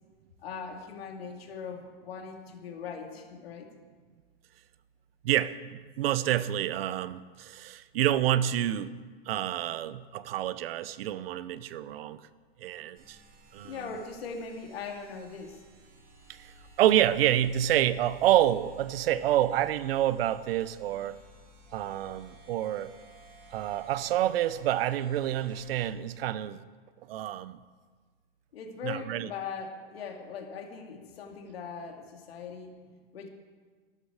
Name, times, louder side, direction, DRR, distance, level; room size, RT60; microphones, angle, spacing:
voice 1, 0.4-3.7 13.6-15.6 28.5-32.7 33.1-33.3, left 5 dB, 90° left, 2.4 m, -40 dB
voice 2, 5.2-9.0 9.3-12.2 12.6-13.2 13.5-13.8 16.3-21.2 21.7-22.9 23.5-26.6 27.1-27.6 28.8-29.3, right 12 dB, 80° right, 0.8 m, -28 dB
sound 1, 12.9-25.9, equal, 30° right, 2.4 m, -55 dB
14.5 x 12.5 x 4.9 m
supercardioid pair, 140°, 29 cm